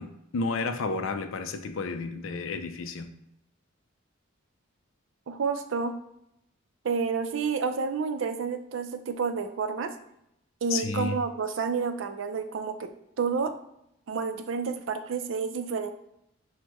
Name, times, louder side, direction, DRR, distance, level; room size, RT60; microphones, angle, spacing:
voice 1, 0.0-3.1 10.7-11.2, left 3 dB, 70° left, 8 dB, 0.4 m, -31 dB
voice 2, 5.3-6.0 6.8-9.9 10.6-12.9 13.2-13.5 14.1-15.9, right 5 dB, 65° right, 8 dB, 0.4 m, -29 dB
6.2 x 2.1 x 2.9 m, 0.79 s
head